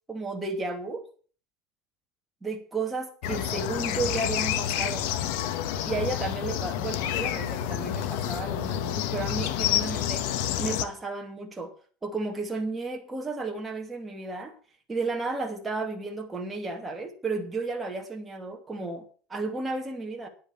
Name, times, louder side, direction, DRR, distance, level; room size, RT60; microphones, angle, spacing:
voice 1, 0.1-1.0 2.4-5.1 5.8-10.3 10.6-11.7 12.0-14.5 14.9-20.3, right 3 dB, 10° right, 2 dB, 2.5 m, -33 dB
sound 1, 3.2-10.8, left 11 dB, 75° left, 1.3 m, -29 dB
10.5 x 8.9 x 7.2 m, 0.42 s
cardioid pair, 145°, 0 cm